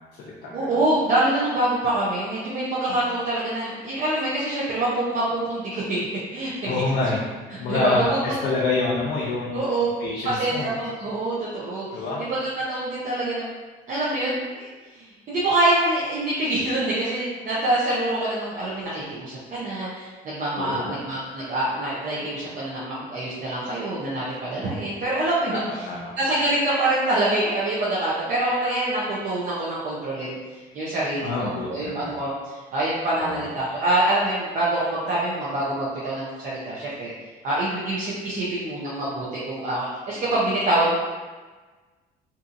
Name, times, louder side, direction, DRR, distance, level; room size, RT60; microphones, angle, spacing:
voice 1, 0.0-0.8 2.9-3.0 6.6-7.2 7.6-9.7 10.0-10.7 11.9-12.2 20.6-20.9 25.5-26.2 31.2-32.1 33.2-33.3, left 3 dB, 80° left, -6 dB, 0.5 m, -27 dB
voice 2, 0.5-6.7 7.5-8.4 9.5-9.9 10.2-13.4 13.9-37.1 37.4-40.9, right 1 dB, 45° right, -8 dB, 0.6 m, -25 dB
2.6 x 2.5 x 2.5 m, 1.3 s
cardioid pair, 110°, 17 cm